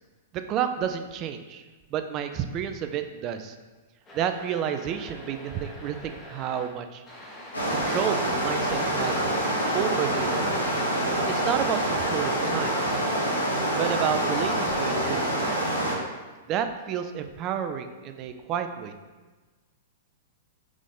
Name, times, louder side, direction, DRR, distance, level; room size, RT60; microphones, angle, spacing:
voice 1, 0.3-1.6 1.9-3.6 4.1-7.0 7.7-9.1 9.7-10.6 11.3-12.7 13.7-15.6 16.5-18.9, right 9 dB, 30° right, 8 dB, 0.3 m, -30 dB
sound 1, 4.1-6.7 7.1-12.1, equal, 20° left, 0.9 m, -43 dB
sound 2, 7.5-15.9, right 1 dB, 85° left, 1.0 m, -26 dB
3.7 x 3.6 x 3.6 m, 1.3 s
figure-of-eight pair, 100°, 0 cm